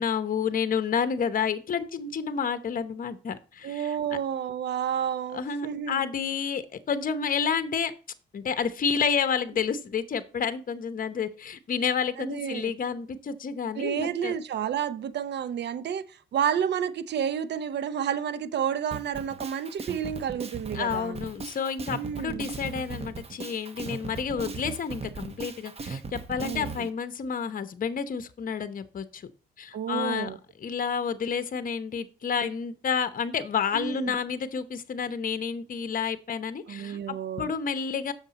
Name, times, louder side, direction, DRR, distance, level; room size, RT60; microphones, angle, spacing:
voice 1, 0.0-4.0 5.3-6.6 6.9-7.9 8.3-14.3 20.7-29.2 29.6-30.3 30.6-38.1, left 6 dB, 45° left, 0.9 m, -30 dB
voice 2, 3.6-6.0 12.2-12.7 13.8-21.2 21.9-22.5 26.4-26.9 29.7-30.4 33.7-34.1 36.7-37.5, right 8 dB, 60° right, 0.7 m, -30 dB
Drum kit, 18.9-26.8, right 4 dB, 30° right, 1.1 m, -38 dB
7.3 x 6.6 x 4.1 m
cardioid pair, 90°, 20 cm